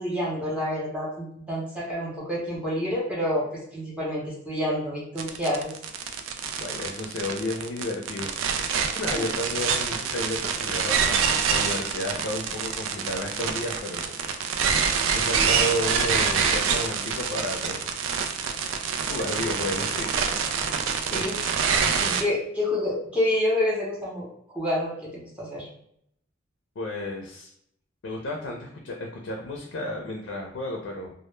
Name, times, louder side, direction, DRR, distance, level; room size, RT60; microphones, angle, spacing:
voice 1, 0.0-3.4 3.7-5.7 9.2-9.3 20.8-21.4 22.0-25.7, left 1 dB, 5° right, -6 dB, 0.6 m, -28 dB
sound 1, 5.2-22.2, right 6 dB, 80° right, 0.3 m, -26 dB
voice 2, 6.6-8.4 8.9-14.2 15.1-17.9 19.1-20.1 21.1-21.2 26.8-27.5 28.0-31.1, left 1 dB, 65° left, 1 dB, 0.4 m, -32 dB
2.1 x 2.0 x 3.1 m, 0.71 s
head